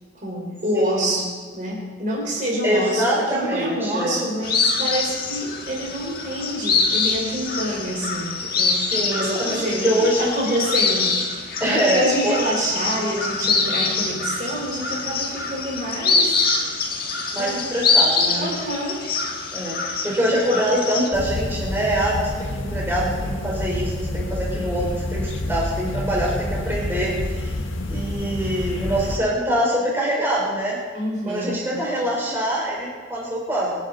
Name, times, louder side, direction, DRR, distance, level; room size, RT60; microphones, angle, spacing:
voice 1, 0.2-1.3 1.5-8.9 9.1-11.2 11.6-16.4 17.4-17.7 18.3-19.0 19.4-19.6 30.9-31.7, equal, 40° right, -3 dB, 5.0 m, -27 dB
voice 2, 0.7-1.1 2.6-4.2 8.8-10.3 11.6-12.4 17.3-18.4 19.5-27.5 27.9-30.8 31.3-33.8, equal, 10° right, -4 dB, 4.5 m, -24 dB
sound 1, 4.4-21.1, left 4 dB, 45° left, 1.7 m, -24 dB
sound 2, 21.1-29.2, left 1 dB, 80° left, 1.5 m, -28 dB
24.5 x 10.0 x 4.3 m, 1.5 s
head